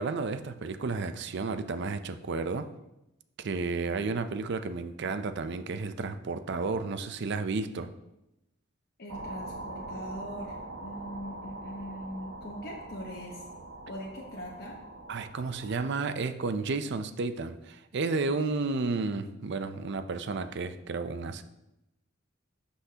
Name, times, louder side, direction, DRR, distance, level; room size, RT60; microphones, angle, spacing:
voice 1, 0.0-2.7 3.4-7.9 15.1-21.4, right 3 dB, 60° right, 10 dB, 0.5 m, -32 dB
voice 2, 9.0-13.4 13.9-14.8, equal, 55° left, -2 dB, 1.0 m, -41 dB
sound 1, 9.1-15.9, right 2 dB, 85° right, 1.0 m, -43 dB
11.5 x 5.7 x 2.8 m, 0.91 s
head